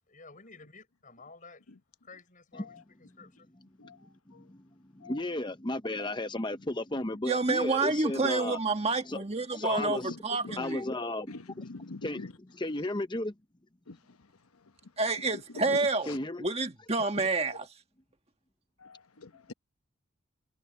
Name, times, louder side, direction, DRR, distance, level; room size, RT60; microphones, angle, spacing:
voice 1, 0.1-1.6 2.0-2.8 3.2-3.5, left 3 dB, 35° left, 6.8 m, -52 dB
voice 2, 3.5-8.6 9.0-9.2 9.5-10.2 10.6-11.3 12.0-13.3 16.1-16.5, left 1 dB, 20° left, 0.8 m, -34 dB
voice 3, 7.2-10.8 15.0-16.1 16.4-17.7, right 3 dB, 30° right, 1.5 m, -29 dB
voice 4, 10.1-10.7 11.3-12.3 13.9-14.2 15.5-15.8 16.1-16.2 17.2-17.3 18.8-19.5, left 3 dB, 85° left, 1.1 m, -44 dB
head